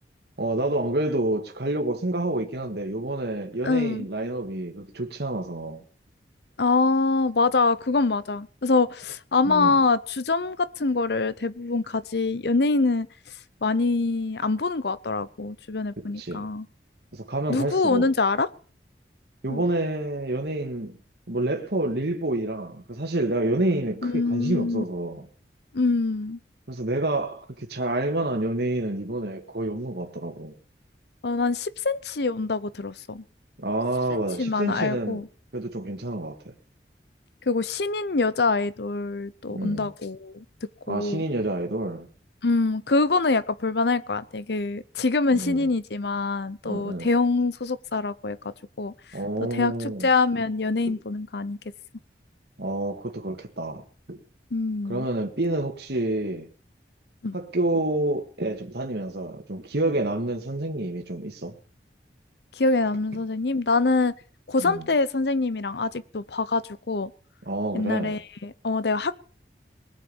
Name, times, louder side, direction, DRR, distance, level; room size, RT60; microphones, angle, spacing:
voice 1, 0.4-5.8 9.4-9.7 16.2-16.4 17.1-18.1 19.4-21.0 21.3-25.3 26.7-30.5 33.6-35.2 35.5-36.5 39.5-39.9 40.9-42.1 45.3-45.7 46.6-47.1 49.1-50.1 50.9-51.0 52.6-54.2 54.9-56.5 57.3-61.5 64.6-64.9 67.4-68.2, right 1 dB, 70° right, 1.8 m, -28 dB
voice 2, 3.6-4.0 6.6-13.1 13.6-16.7 17.5-18.5 19.5-19.6 24.0-24.8 25.7-26.4 31.2-33.2 34.1-35.3 37.5-40.4 40.9-41.2 42.4-48.9 49.5-51.6 54.5-55.1 57.2-57.4 62.6-64.1 64.5-67.1 67.7-69.2, left 3 dB, 70° left, 0.8 m, -25 dB
20.0 x 7.3 x 7.1 m
head